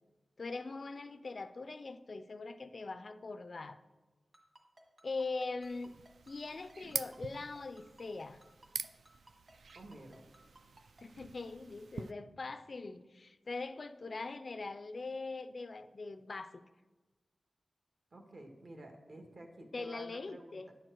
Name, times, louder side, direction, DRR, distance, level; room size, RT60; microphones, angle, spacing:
voice 1, 0.4-3.8 5.0-5.9 6.3-8.4 11.0-16.6 19.7-20.7, left 3 dB, 45° left, 11 dB, 0.3 m, -42 dB
Ringtone, 4.3-11.0, right 1 dB, 40° right, 1.7 m, -60 dB
sound 1, 5.6-12.1, right 5 dB, 80° right, 0.3 m, -46 dB
voice 2, 9.7-10.3 18.1-20.7, right 1 dB, 60° right, 3 dB, 1.4 m, -51 dB
10.5 x 4.5 x 7.8 m, 1.2 s
wide cardioid pair, 135°, 0 cm